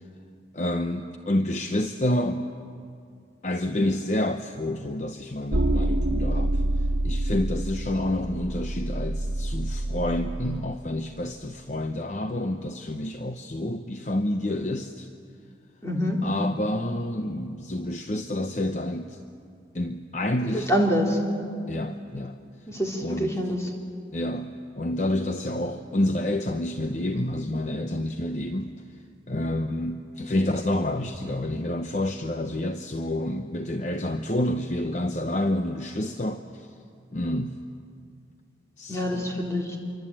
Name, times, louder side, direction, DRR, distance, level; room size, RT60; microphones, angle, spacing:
voice 1, 0.5-2.4 3.4-6.5 7.0-15.1 16.2-19.2 19.7-20.7 21.7-22.3 23.0-23.4 24.1-28.7 29.3-36.7 37.1-37.6 38.8-39.5, left 1 dB, 40° left, 6 dB, 0.8 m, -28 dB
sound 1, 5.5-10.6, right 1 dB, 90° right, 1.5 m, -27 dB
voice 2, 15.8-16.2 20.5-21.2 22.7-23.6 38.9-39.7, equal, 15° left, -1 dB, 3.6 m, -25 dB
26.5 x 24.0 x 8.9 m, 2.4 s
head